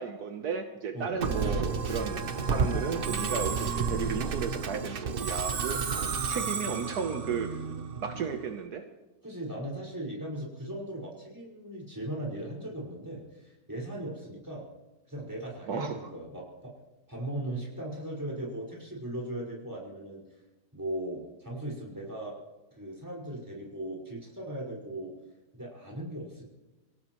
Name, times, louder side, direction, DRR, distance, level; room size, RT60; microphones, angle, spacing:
voice 1, 0.0-5.8 6.3-7.6 8.0-8.8 15.7-16.1, right 6 dB, 70° right, 5 dB, 1.5 m, -34 dB
Musical instrument, 1.2-8.5, right 5 dB, 45° right, 0.8 m, -31 dB
voice 2, 9.2-14.6 15.1-16.7 17.1-20.2 20.7-22.4 22.7-25.1 25.5-26.4, right 1 dB, 10° right, -4 dB, 5.1 m, -38 dB
26.5 x 17.5 x 3.1 m, 1.1 s
omnidirectional pair, 1.8 m